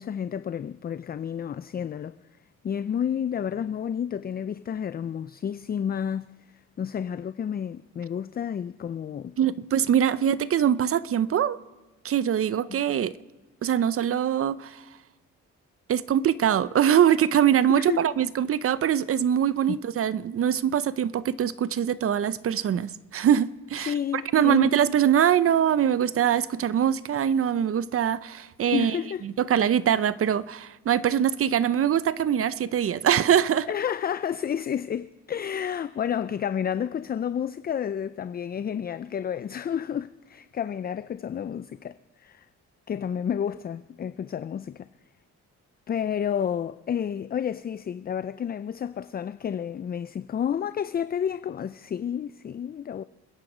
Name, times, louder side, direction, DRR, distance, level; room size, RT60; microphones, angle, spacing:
voice 1, 0.0-2.2 2.6-6.3 6.8-9.4 12.7-12.8 17.7-18.1 19.7-19.8 23.8-24.7 28.7-29.2 33.7-42.5 42.9-44.9 45.9-53.0, left 8 dB, 30° left, 0.4 m, -30 dB
voice 2, 9.4-11.6 12.0-13.1 13.6-14.8 15.9-23.9 24.3-29.0 29.2-33.7, right 9 dB, 50° right, 0.7 m, -23 dB
28.0 x 10.5 x 5.0 m
cardioid pair, 90°, 30 cm